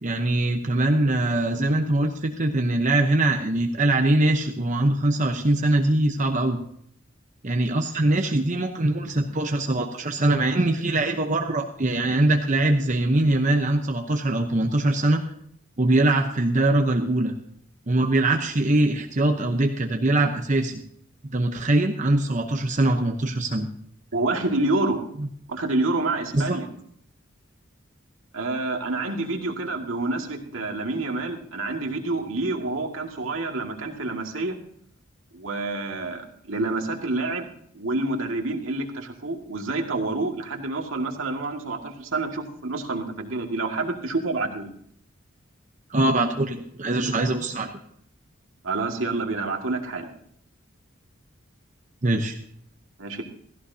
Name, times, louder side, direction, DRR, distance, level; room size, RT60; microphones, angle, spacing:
voice 1, 0.0-6.6 7.4-15.2 15.8-17.3 17.9-20.8 21.3-23.7 25.2-25.3 26.3-26.6 45.9-47.7 52.0-52.4, right 2 dB, 40° right, 4 dB, 0.8 m, -22 dB
voice 2, 24.1-25.0 25.5-26.7 28.3-34.6 35.3-37.5 37.7-44.7 48.6-50.1 53.0-53.2, right 2 dB, 90° right, 2 dB, 2.1 m, -28 dB
16.5 x 14.5 x 2.8 m, 0.66 s
head